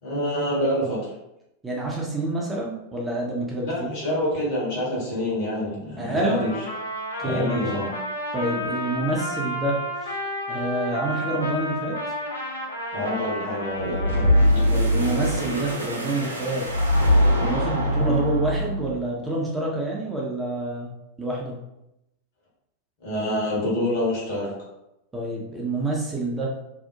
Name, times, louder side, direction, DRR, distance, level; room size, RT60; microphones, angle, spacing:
voice 1, 0.0-1.0 3.6-6.5 7.2-7.9 12.9-14.4 23.0-24.5, left 1 dB, 50° left, -5 dB, 1.2 m, -26 dB
voice 2, 1.6-3.9 6.0-6.4 7.2-7.7 8.3-10.1 10.5-12.0 14.7-16.7 17.4-20.9 21.2-21.5 25.1-26.5, right 2 dB, 10° right, -3 dB, 0.5 m, -27 dB
Trumpet, 6.2-14.7, left 1 dB, 75° left, 0.5 m, -32 dB
sound 1, 13.8-19.0, equal, 85° right, 0.5 m, -22 dB
2.6 x 2.0 x 2.7 m, 0.87 s
figure-of-eight pair, 90°, 0 cm